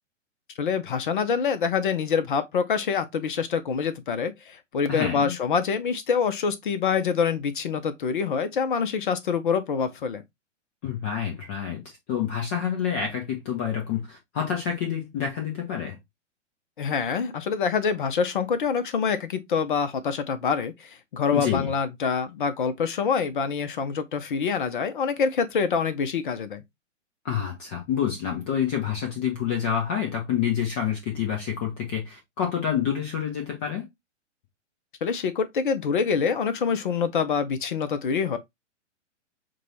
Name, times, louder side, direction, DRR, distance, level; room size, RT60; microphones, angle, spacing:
voice 1, 0.6-10.2 16.8-20.7 21.1-26.6 35.0-38.4, left 6 dB, 45° left, 0.7 m, -26 dB
voice 2, 4.9-5.3 10.8-11.8 12.1-16.0 21.3-21.7 27.2-33.8, left 8 dB, 10° left, 0.4 m, -28 dB
6.0 x 2.3 x 2.8 m
figure-of-eight pair, 115°, 37 cm